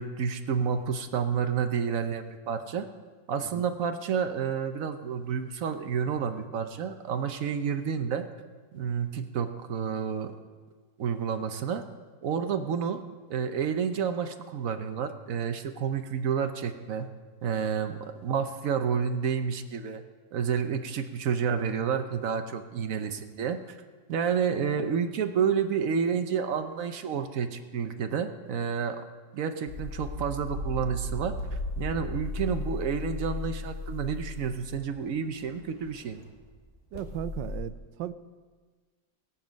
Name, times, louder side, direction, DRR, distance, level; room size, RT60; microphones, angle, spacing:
voice 1, 0.0-2.9 3.3-8.3 8.7-10.3 11.0-11.8 12.2-13.0 13.3-17.1 17.4-20.0 20.3-23.6 24.1-29.0 29.3-36.2, right 7 dB, 60° right, 8 dB, 0.9 m, -30 dB
sound 1, 29.7-36.3 36.9-37.6, left 2 dB, 40° left, 2.3 m, -35 dB
voice 2, 36.9-38.1, right 11 dB, 80° right, 13 dB, 1.3 m, -36 dB
20.0 x 7.3 x 5.2 m, 1.4 s
omnidirectional pair, 2.0 m